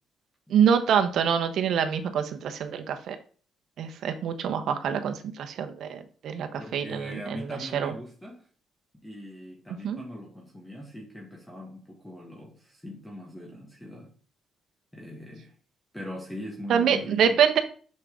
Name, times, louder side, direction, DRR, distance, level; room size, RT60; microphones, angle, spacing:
voice 1, 0.5-3.2 3.8-7.9 9.8-10.0 16.7-17.6, right 8 dB, 70° right, 1.1 m, -25 dB
voice 2, 6.6-8.5 9.0-14.1 14.9-15.5 15.9-17.4, left 1 dB, 5° left, 1.5 m, -41 dB
6.8 x 5.6 x 3.8 m
cardioid pair, 90°, 0 cm